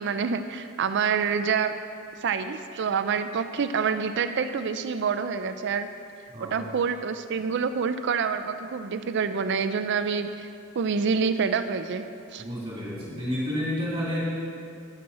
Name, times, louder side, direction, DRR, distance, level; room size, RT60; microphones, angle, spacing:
voice 1, 0.0-1.8 2.2-5.9 6.4-10.5 10.7-12.4, right 6 dB, 60° right, 9 dB, 0.4 m, -27 dB
voice 2, 12.4-14.3, equal, 25° right, -7 dB, 2.5 m, -30 dB
12.5 x 9.9 x 4.2 m, 2.4 s
head